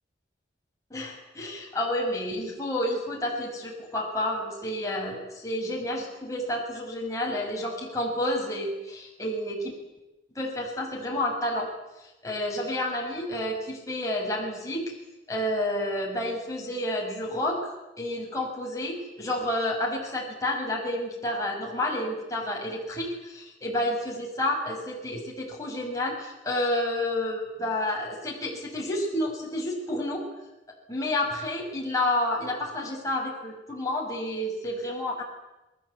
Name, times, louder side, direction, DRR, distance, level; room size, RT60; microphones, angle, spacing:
voice 1, 0.9-9.7 10.4-11.7 12.0-14.9 15.3-30.2 30.9-35.2, left 1 dB, 20° left, -2 dB, 6.1 m, -30 dB
28.0 x 21.0 x 8.3 m, 0.99 s
head